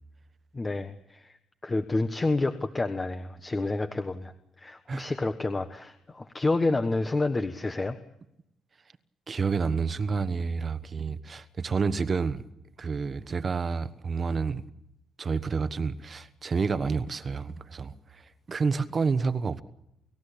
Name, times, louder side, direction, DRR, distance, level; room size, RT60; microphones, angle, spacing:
voice 1, 0.5-1.4 1.6-4.3 4.6-8.0, left 2 dB, 25° left, 1.3 m, -29 dB
voice 2, 9.3-12.4 12.8-14.6 15.2-19.6, right 5 dB, 40° right, 1.3 m, -29 dB
29.5 x 15.5 x 8.6 m
cardioid pair, 90°, 0 cm